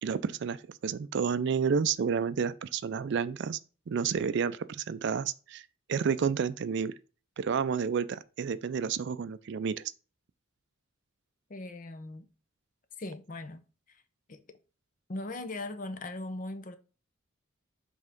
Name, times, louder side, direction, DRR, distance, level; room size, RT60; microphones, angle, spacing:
voice 1, 0.0-3.6 3.9-5.6 5.9-6.9 7.4-9.9, right 6 dB, 55° right, 0.4 m, -30 dB
voice 2, 11.5-12.3 13.0-13.6 13.9-14.0 14.3-14.6 15.1-16.8, left 2 dB, 40° left, 0.6 m, -39 dB
5.5 x 3.5 x 5.2 m
head